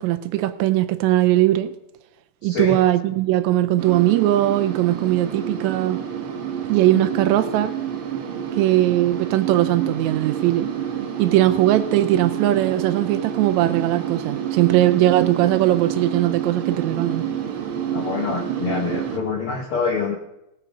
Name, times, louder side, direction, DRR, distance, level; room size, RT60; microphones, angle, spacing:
voice 1, 0.0-1.7 2.4-6.0 6.7-7.8 8.6-10.7 11.2-17.3, right 14 dB, 85° right, 1.6 m, -19 dB
voice 2, 2.4-2.8 17.9-20.2, left 5 dB, 70° left, 1.3 m, -26 dB
sound 1, 3.8-19.2, right 9 dB, 60° right, 1.4 m, -28 dB
17.0 x 8.3 x 5.1 m
omnidirectional pair, 3.9 m